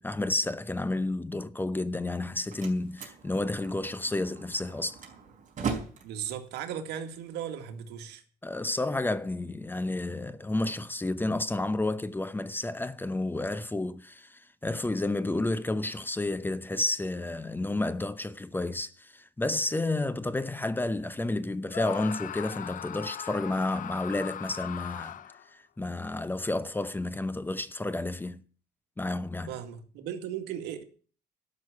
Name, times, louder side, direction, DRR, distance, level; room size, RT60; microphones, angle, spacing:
voice 1, 0.0-5.0 8.4-25.2 25.5-28.4 29.0-29.5, left 2 dB, 10° left, 0.7 m, -31 dB
Slam, 2.0-8.0, right 6 dB, 50° right, 4.4 m, -40 dB
voice 2, 6.0-8.2 29.5-30.8, right 9 dB, 85° right, 2.1 m, -37 dB
Screaming, 21.7-25.5, left 11 dB, 50° left, 0.7 m, -39 dB
12.5 x 6.4 x 9.5 m
cardioid pair, 110°, 17 cm